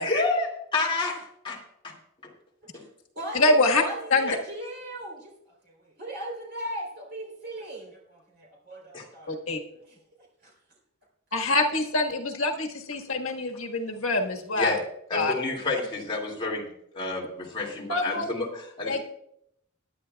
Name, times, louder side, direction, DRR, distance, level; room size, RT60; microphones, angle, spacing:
voice 1, 0.0-1.9 4.3-4.4 8.9-9.1 14.6-14.8 15.1-16.7 16.9-19.0, left 3 dB, 25° left, -2 dB, 2.4 m, -29 dB
voice 2, 2.7-9.6 9.8-10.0 10.4-10.5, right 1 dB, 50° right, -2 dB, 3.6 m, -38 dB
voice 3, 3.3-3.8 4.1-4.3 9.3-9.6 11.3-14.8 15.1-15.3 17.9-18.2 18.9-19.0, left 2 dB, 75° left, 2 dB, 1.5 m, -25 dB
20.0 x 9.9 x 2.3 m, 0.74 s
head